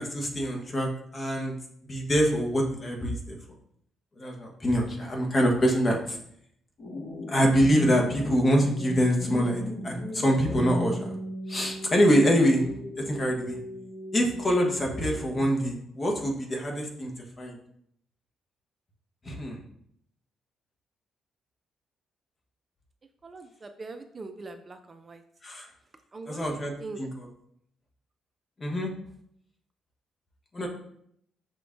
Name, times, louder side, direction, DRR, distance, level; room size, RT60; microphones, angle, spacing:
voice 1, 0.0-1.5 1.8-3.4 4.2-6.2 7.3-11.2 11.5-12.6 13.1-13.6 14.1-17.1 17.4-17.6 19.2-19.6 25.4-25.6 26.3-26.7 27.0-27.3 28.6-28.9 30.5-30.7, equal, 30° left, 1 dB, 1.1 m, -25 dB
sound 1, 6.8-15.8, left 1 dB, 50° left, 1.3 m, -37 dB
voice 2, 23.2-25.2 26.1-27.0, right 3 dB, 35° right, 7 dB, 0.4 m, -41 dB
5.8 x 3.5 x 2.5 m, 0.69 s
cardioid pair, 90°, 0 cm